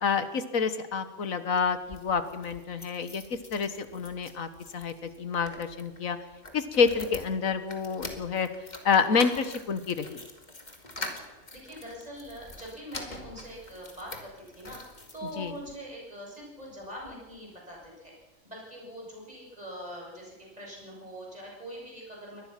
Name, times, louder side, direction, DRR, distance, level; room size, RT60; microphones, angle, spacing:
voice 1, 0.0-3.2 3.5-4.9 5.2-6.2 6.5-8.5 8.9-10.2 15.4-15.5, left 5 dB, 85° left, 11 dB, 1.7 m, -28 dB
sound 1, 1.7-15.8 16.3-17.2 17.5-17.6 17.8-17.9, left 2 dB, 35° left, 2.3 m, -45 dB
voice 2, 11.0-14.1 14.4-18.1 18.4-22.4, equal, 30° right, -2 dB, 7.8 m, -43 dB
23.5 x 19.0 x 5.9 m, 1.1 s
omnidirectional pair, 1.4 m